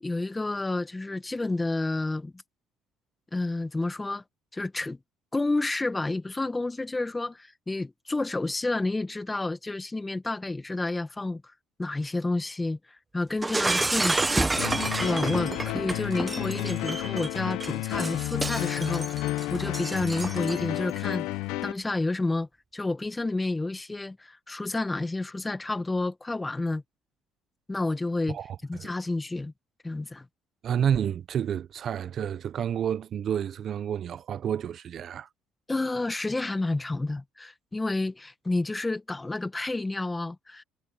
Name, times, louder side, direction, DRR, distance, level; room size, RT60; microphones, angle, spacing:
voice 1, 0.0-2.4 3.3-4.2 4.5-5.0 5.3-11.4 11.8-12.8 13.1-14.5 15.0-21.3 21.6-26.8 27.7-28.4 28.7-29.5 29.8-30.2 35.7-40.6, left 2 dB, 15° left, 1.7 m, -30 dB
Shatter, 13.4-20.8, right 3 dB, 20° right, 0.9 m, -30 dB
sound 1, 14.6-21.7, left 18 dB, 80° left, 1.0 m, -31 dB
voice 2, 28.3-28.9 30.6-35.3, right 9 dB, 55° right, 0.8 m, -30 dB
supercardioid pair, 80°, 0 cm